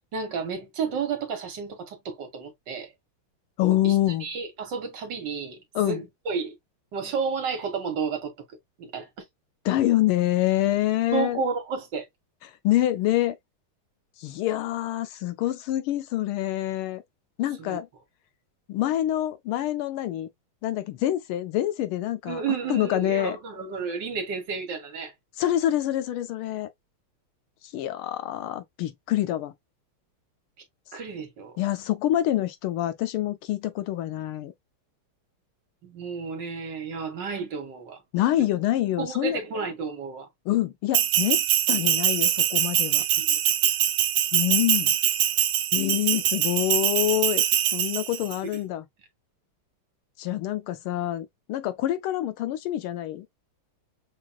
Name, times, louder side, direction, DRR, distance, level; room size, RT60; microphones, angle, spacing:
voice 1, 0.1-2.9 3.8-4.0 4.2-6.6 6.9-8.3 8.8-9.1 11.1-12.1 17.6-17.8 22.3-25.1 30.9-31.5 35.8-38.0 39.0-40.3 43.3-43.4, right 5 dB, 60° right, 1.7 m, -31 dB
voice 2, 3.6-4.3 5.7-6.0 9.6-11.4 12.6-13.4 14.2-17.0 17.4-17.9 18.7-20.3 20.6-22.4 22.7-23.4 25.4-26.7 27.7-29.5 31.6-34.5 38.1-39.4 40.5-43.0 44.3-44.9 45.7-47.4 47.7-48.9 50.2-53.3, left 13 dB, 85° left, 1.5 m, -26 dB
Bell, 40.9-48.4, right 11 dB, 80° right, 1.4 m, -23 dB
5.9 x 2.4 x 2.3 m
omnidirectional pair, 2.3 m